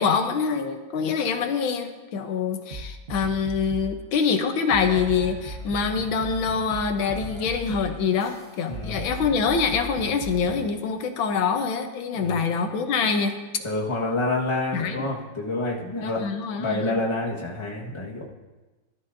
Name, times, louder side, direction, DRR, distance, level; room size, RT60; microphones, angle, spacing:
voice 1, 0.0-13.3 14.7-15.1 16.0-17.0, left 5 dB, 85° left, 6 dB, 1.7 m, -25 dB
sound 1, 2.7-4.0 4.7-10.7, right 1 dB, 40° right, 1.0 m, -37 dB
voice 2, 8.7-9.1 12.2-12.4 13.6-16.2 16.6-18.3, left 2 dB, 15° left, -2 dB, 1.3 m, -28 dB
16.0 x 12.5 x 2.6 m, 1.2 s
omnidirectional pair, 2.1 m